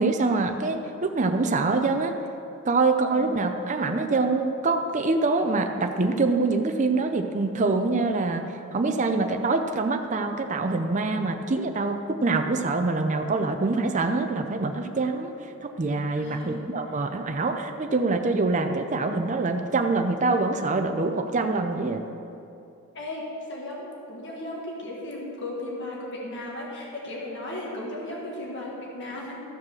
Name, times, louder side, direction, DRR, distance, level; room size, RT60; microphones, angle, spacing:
voice 1, 0.0-2.1 2.7-8.4 8.7-15.3 15.6-22.0, right 3 dB, 35° right, 5 dB, 0.5 m, -25 dB
voice 2, 3.0-3.3 16.2-17.1 22.9-29.4, left 1 dB, 55° left, -3 dB, 1.6 m, -36 dB
13.5 x 4.9 x 6.3 m, 2.7 s
head